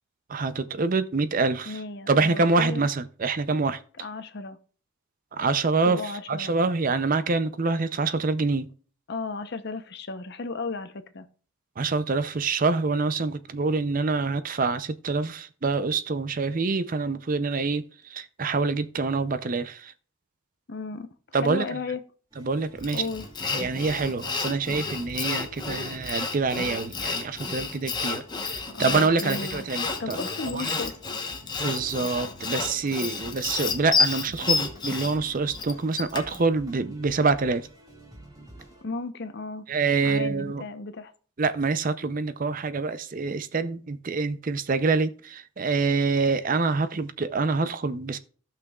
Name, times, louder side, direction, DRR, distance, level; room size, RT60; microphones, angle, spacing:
voice 1, 0.3-1.7 2.1-3.8 5.3-6.0 6.3-8.7 11.8-17.8 18.1-19.9 21.3-21.7 22.4-23.0 23.5-30.2 30.5-30.7 31.6-37.6 39.7-40.6 41.4-48.2, right 4 dB, 40° right, 0.5 m, -26 dB
voice 2, 1.7-2.9 4.0-4.6 5.9-6.5 9.1-11.3 20.7-22.0 22.9-23.3 28.7-29.7 30.0-30.9 38.8-39.7 40.0-41.1, left 3 dB, 55° left, 0.8 m, -34 dB
sound 1, 22.3-38.8, right 1 dB, 20° right, 2.0 m, -48 dB
Sawing, 22.8-36.4, left 4 dB, 20° left, 1.0 m, -30 dB
16.5 x 6.0 x 2.4 m
head